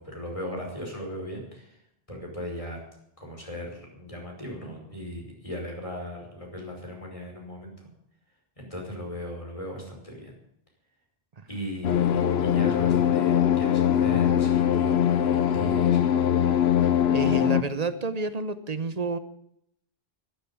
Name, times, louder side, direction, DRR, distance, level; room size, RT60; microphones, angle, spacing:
voice 1, 0.0-1.8 2.1-2.8 3.2-7.9 8.6-10.3 11.5-16.1, equal, 35° left, 0 dB, 5.4 m, -37 dB
sound 1, 11.8-17.6, left 10 dB, 80° left, 1.1 m, -22 dB
voice 2, 17.1-19.2, right 4 dB, 40° right, 12 dB, 1.1 m, -30 dB
12.5 x 12.0 x 8.7 m, 0.75 s
omnidirectional pair, 1.0 m